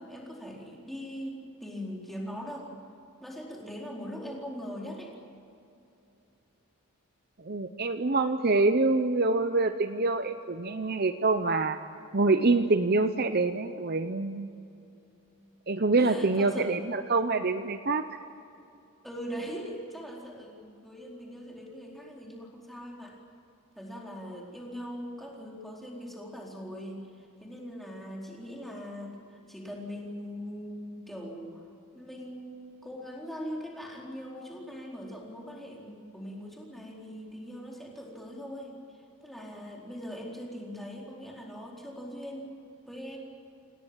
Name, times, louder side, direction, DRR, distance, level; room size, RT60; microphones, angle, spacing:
voice 1, 0.0-2.7 3.2-5.2 16.0-16.9 19.0-23.2 23.8-42.5 42.9-43.2, equal, ahead, -2 dB, 4.4 m, -41 dB
voice 2, 7.4-11.8 12.1-14.5 15.7-18.0, right 3 dB, 45° right, 9 dB, 0.8 m, -26 dB
28.0 x 19.0 x 9.0 m, 2.7 s
head